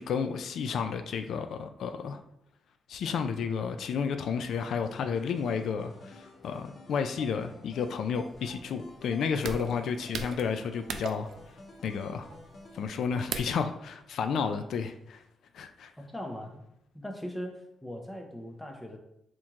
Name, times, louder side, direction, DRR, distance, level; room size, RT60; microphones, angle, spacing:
voice 1, 0.0-2.2 2.9-11.3 11.8-12.3 12.7-15.2 15.5-15.9, left 6 dB, 75° left, 8 dB, 0.3 m, -32 dB
sound 1, 4.4-12.9, left 2 dB, 45° left, 0.8 m, -51 dB
sound 2, 7.7-13.7, right 6 dB, 70° right, 0.3 m, -40 dB
voice 2, 16.0-16.6 16.9-19.0, equal, 10° left, 2 dB, 0.8 m, -40 dB
4.3 x 3.0 x 3.6 m, 0.79 s
cardioid pair, 110°, 0 cm